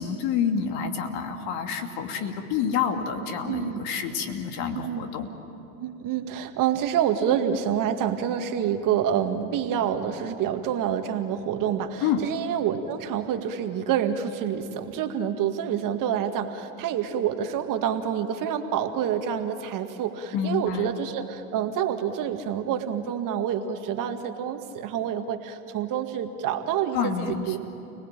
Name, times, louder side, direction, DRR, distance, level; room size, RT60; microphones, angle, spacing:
voice 1, 0.0-5.3 12.0-12.3 20.3-21.0 26.9-27.6, left 7 dB, 55° left, 5 dB, 2.7 m, -28 dB
voice 2, 3.4-3.8 4.7-5.1 5.8-27.6, right 9 dB, 45° right, 6 dB, 2.0 m, -27 dB
30.0 x 19.0 x 9.0 m, 2.9 s
hypercardioid pair, 90°, 46 cm